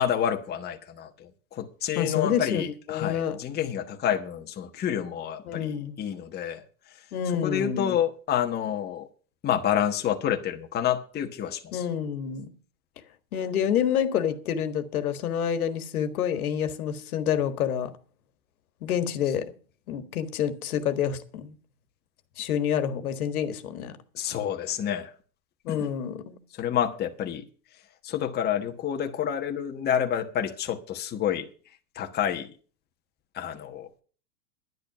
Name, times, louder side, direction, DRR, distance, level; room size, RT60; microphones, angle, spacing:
voice 1, 0.0-6.6 7.4-9.1 9.4-11.8 24.1-25.1 25.7-25.9 26.6-27.5 28.0-31.5 31.9-32.5 33.3-33.9, left 9 dB, 20° left, 1.3 m, -28 dB
voice 2, 2.0-3.4 5.5-6.0 7.1-8.0 11.7-12.5 13.3-17.9 18.8-19.5 19.9-21.6 22.4-24.0 25.6-26.4, left 9 dB, 65° left, 1.8 m, -28 dB
10.5 x 10.5 x 6.0 m
hypercardioid pair, 115°, 47 cm